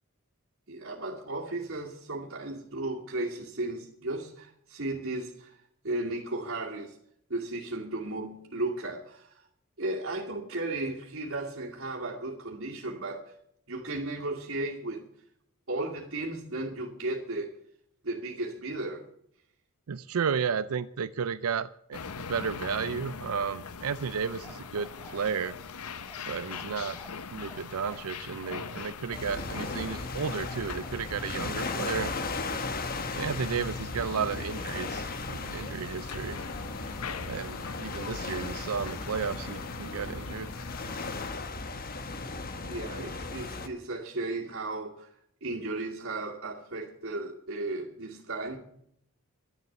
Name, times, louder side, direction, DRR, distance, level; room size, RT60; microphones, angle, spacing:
voice 1, 0.7-7.0 7.3-9.5 9.8-13.3 13.7-15.1 15.7-17.5 18.0-19.1 42.6-45.1 45.4-48.6, right 2 dB, 60° right, 2.4 m, -35 dB
voice 2, 19.9-22.0 22.3-25.5 26.3-27.0 27.3-32.1 33.1-36.4 37.3-40.5, right 6 dB, 75° right, 0.5 m, -33 dB
sound 1, 21.9-41.3, left 6 dB, 85° left, 0.7 m, -42 dB
Bark, 24.4-31.4 31.7-31.9, left 2 dB, 10° left, 4.9 m, -51 dB
sound 2, 29.1-43.7, left 3 dB, 40° left, 1.2 m, -36 dB
12.0 x 10.5 x 7.9 m
head